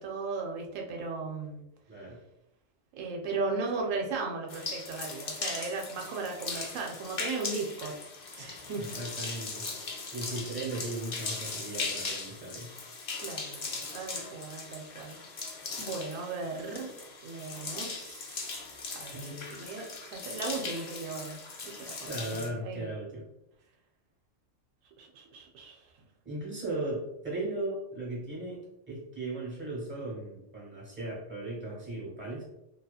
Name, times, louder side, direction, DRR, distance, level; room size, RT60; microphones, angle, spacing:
voice 1, 0.0-1.6 2.9-7.9 8.4-8.8 13.2-15.2 15.8-16.9 17.2-18.5 18.9-21.4 21.6-22.9 25.0-25.8, right 4 dB, 85° right, 1 dB, 1.0 m, -37 dB
voice 2, 1.9-2.2 8.8-9.7 10.1-12.7 19.1-19.5 22.1-23.2 26.2-32.4, right 2 dB, 10° right, -5 dB, 0.9 m, -37 dB
sound 1, 4.5-22.5, left 4 dB, 65° left, 0.4 m, -39 dB
2.7 x 2.4 x 2.3 m, 0.85 s
omnidirectional pair, 1.3 m